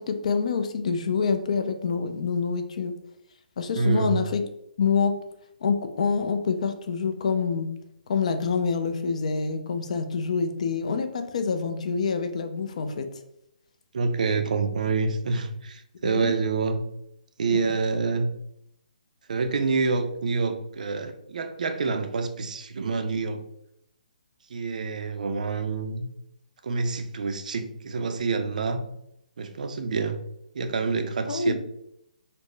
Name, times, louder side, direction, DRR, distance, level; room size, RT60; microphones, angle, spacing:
voice 1, 0.0-2.9 3.6-4.4 4.8-5.1 5.6-7.7 8.1-13.1 16.0-16.3 17.5-17.6 31.3-31.5, left 5 dB, 50° left, 7 dB, 0.4 m, -26 dB
voice 2, 3.8-4.2 13.9-16.8 17.4-18.3 19.3-23.4 24.5-26.1 26.6-28.8 29.4-30.2 30.5-31.5, right 4 dB, 65° right, 8 dB, 0.4 m, -27 dB
4.1 x 2.0 x 3.2 m, 0.80 s
hypercardioid pair, 160°, 5 cm